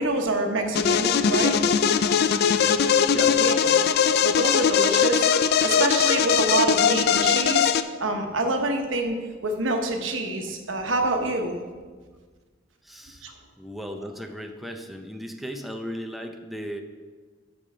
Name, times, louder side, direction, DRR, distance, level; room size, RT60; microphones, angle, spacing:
voice 1, 0.0-1.6 3.4-3.7 4.2-7.7 8.0-11.6 13.2-13.3, right 2 dB, 85° right, 4 dB, 1.1 m, -26 dB
sound 1, 0.7-7.8, left 7 dB, 55° left, 0.4 m, -20 dB
voice 2, 3.1-3.6 12.8-16.8, equal, ahead, 4 dB, 0.5 m, -37 dB
8.6 x 5.4 x 4.8 m, 1.4 s
head